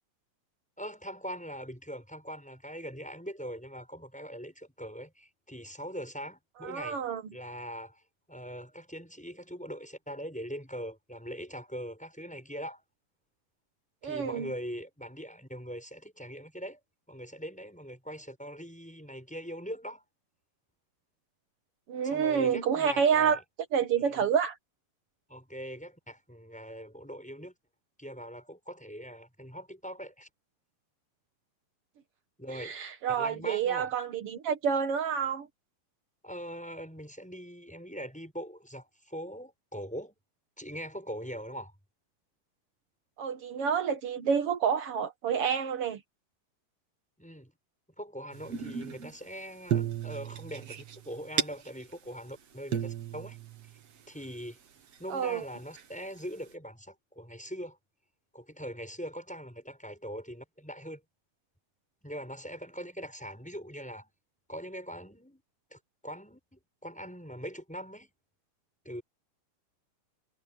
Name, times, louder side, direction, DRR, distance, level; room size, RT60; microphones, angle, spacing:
voice 1, 0.8-7.0 7.3-8.0 8.3-12.8 14.0-16.8 17.1-20.0 22.0-23.4 24.0-24.2 25.3-27.5 28.0-30.3 32.4-32.8 33.1-33.9 36.2-40.1 40.6-41.7 47.2-47.5 48.0-53.4 54.1-54.6 55.0-57.8 58.3-61.0 62.0-64.1 64.5-65.4 65.7-68.1 68.8-69.0, equal, ahead, 6.4 m, -42 dB
voice 2, 6.6-7.2 14.0-14.5 21.9-23.4 23.7-24.6 32.5-35.5 43.2-46.0 55.1-55.4, right 7 dB, 80° right, 1.3 m, -28 dB
sound 1, 48.3-49.2 49.7-51.9 52.3-52.4 52.7-54.3 54.9-55.0 55.7-56.2, right 9 dB, 50° right, 2.4 m, -34 dB
omnidirectional pair, 4.5 m